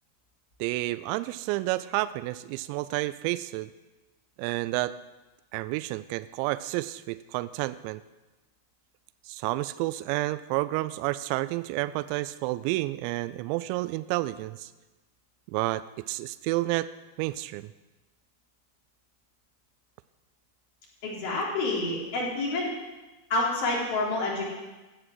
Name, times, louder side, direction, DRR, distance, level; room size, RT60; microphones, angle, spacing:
voice 1, 0.6-3.7 4.4-4.9 5.5-8.0 9.3-14.7 15.5-16.9 17.2-17.7, right 18 dB, 45° right, 15 dB, 0.4 m, -30 dB
voice 2, 21.0-22.7 23.3-24.5, left 2 dB, 50° left, -3 dB, 3.6 m, -28 dB
16.0 x 6.1 x 6.2 m, 1.1 s
figure-of-eight pair, 90°, 0 cm